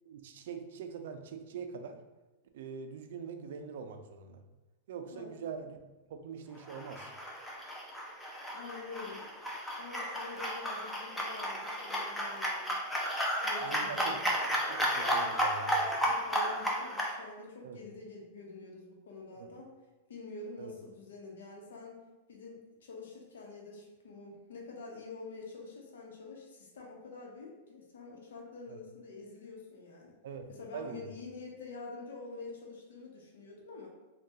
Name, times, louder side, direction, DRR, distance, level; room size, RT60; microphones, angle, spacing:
voice 1, 0.1-2.0 2.5-4.4 4.9-5.8 6.1-7.1 13.6-14.2 14.5-15.9 17.6-17.8 19.4-19.5 20.6-20.7 28.7-28.8 30.2-31.1, right 6 dB, 70° right, 6 dB, 0.4 m, -43 dB
sound 1, 6.6-17.1, equal, 5° left, 0.6 m, -33 dB
voice 2, 8.5-9.2 9.8-12.8 13.4-14.3 16.0-19.7 20.1-22.0 22.3-30.1 30.5-33.9, left 3 dB, 85° left, -1 dB, 0.8 m, -47 dB
3.7 x 2.3 x 2.7 m, 1.1 s
hypercardioid pair, 130°, 0 cm